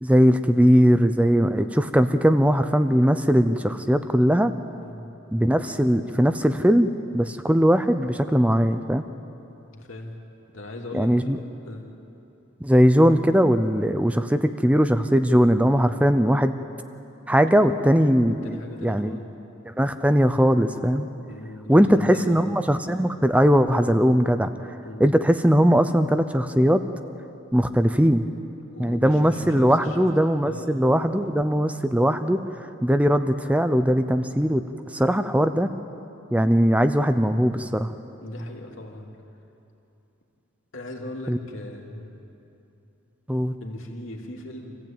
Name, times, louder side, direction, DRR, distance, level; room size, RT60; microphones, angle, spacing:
voice 1, 0.0-4.5 5.3-9.0 10.9-11.4 12.6-16.5 17.3-18.5 18.8-19.2 19.7-21.1 21.7-24.7 25.0-26.8 27.5-28.2 28.8-32.4 32.8-34.6 34.9-35.7 36.3-37.9 41.3-41.4 43.3-43.5, equal, 5° right, 9 dB, 0.6 m, -20 dB
voice 2, 9.7-10.2 10.5-11.9 18.4-19.3 21.3-22.5 24.8-25.1 28.7-30.1 30.4-30.8 38.2-39.1 40.7-42.1 43.6-44.8, left 1 dB, 65° left, 1 dB, 2.8 m, -38 dB
26.5 x 15.5 x 8.9 m, 2.8 s
head